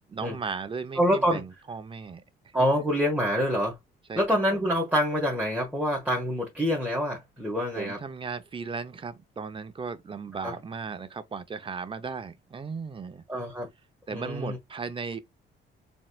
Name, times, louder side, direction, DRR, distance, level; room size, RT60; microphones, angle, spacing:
voice 1, 0.1-2.2 4.1-4.2 4.5-4.7 7.7-13.2 14.1-15.2, right 5 dB, 25° right, 0.7 m, -36 dB
voice 2, 1.0-1.4 2.5-3.8 4.1-8.0 10.4-10.5 13.3-13.7 14.1-14.6, equal, 5° right, 1.5 m, -26 dB
4.0 x 3.9 x 2.3 m
cardioid pair, 90°, 20 cm